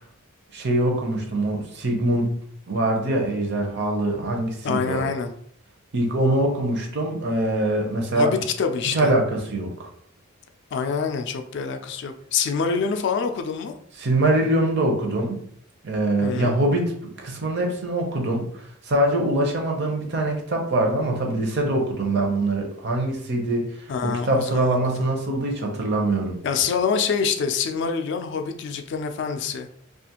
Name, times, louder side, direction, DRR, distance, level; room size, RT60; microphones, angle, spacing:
voice 1, 0.5-2.3 2.7-5.0 5.9-8.3 8.8-9.9 14.0-15.4 15.8-18.5 18.8-26.4, right 1 dB, 55° right, 2 dB, 0.6 m, -23 dB
voice 2, 4.6-5.3 8.1-9.1 10.7-13.7 16.2-16.6 23.9-24.8 26.4-29.7, left 5 dB, 60° left, 7 dB, 0.3 m, -26 dB
2.4 x 2.4 x 2.8 m, 0.64 s
head